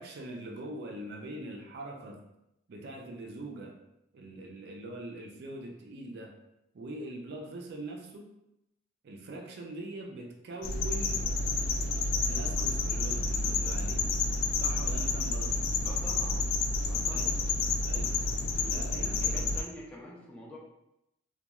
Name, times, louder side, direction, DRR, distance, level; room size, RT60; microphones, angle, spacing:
voice 1, 0.0-2.2 2.7-3.7 4.1-6.3 6.7-8.3 9.0-11.2 12.2-14.1 14.6-15.5 17.1-17.4 17.9-18.1 18.6-19.4, right 1 dB, 55° right, 2 dB, 0.4 m, -42 dB
sound 1, 10.6-19.6, left 3 dB, 75° left, 0.3 m, -30 dB
voice 2, 15.8-16.4 16.8-17.3 18.6-20.6, left 1 dB, 5° left, -5 dB, 0.5 m, -47 dB
2.9 x 2.2 x 2.3 m, 0.85 s
head